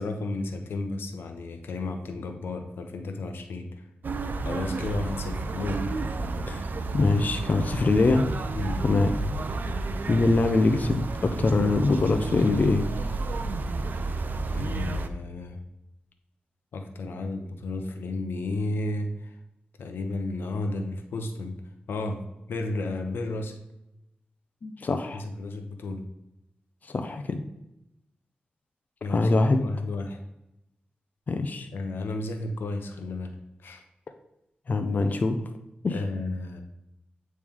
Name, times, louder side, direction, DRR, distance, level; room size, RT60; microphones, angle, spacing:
voice 1, 0.0-3.9 4.4-5.8 8.6-8.8 14.5-15.6 16.7-19.4 19.8-21.6 21.9-22.2 22.5-23.6 25.1-26.0 29.0-29.3 29.6-30.2 31.7-33.8 35.9-36.6, left 2 dB, 90° left, 5 dB, 0.7 m, -33 dB
sound 1, 4.0-15.1, right 3 dB, 60° right, 0.5 m, -31 dB
voice 2, 6.9-8.3 8.8-9.1 10.1-12.9 24.6-25.2 26.9-27.4 29.1-29.6 31.3-31.7 34.7-35.4 35.8-35.9, left 3 dB, 50° left, 6 dB, 0.5 m, -23 dB
8.6 x 3.2 x 3.6 m, 0.88 s
cardioid pair, 65°, 4 cm